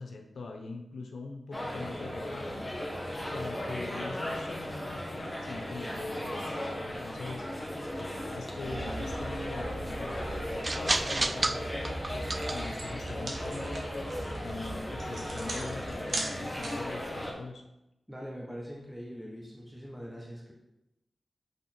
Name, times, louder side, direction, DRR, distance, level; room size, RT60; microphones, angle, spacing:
voice 1, 0.0-2.7 3.3-6.6 6.8-7.5 8.0-10.3 10.7-17.6, left 3 dB, 90° left, 2 dB, 0.9 m, -42 dB
sound 1, 1.5-17.3, left 1 dB, 15° left, 1.8 m, -37 dB
sound 2, 8.6-16.0, right 2 dB, 35° right, 0.4 m, -36 dB
sound 3, 11.8-11.9 12.2-17.0, right 2 dB, 70° right, 1.4 m, -39 dB
voice 2, 18.1-20.5, equal, 5° right, -2 dB, 1.2 m, -42 dB
8.3 x 3.6 x 4.4 m, 0.89 s
cardioid pair, 65°, 0 cm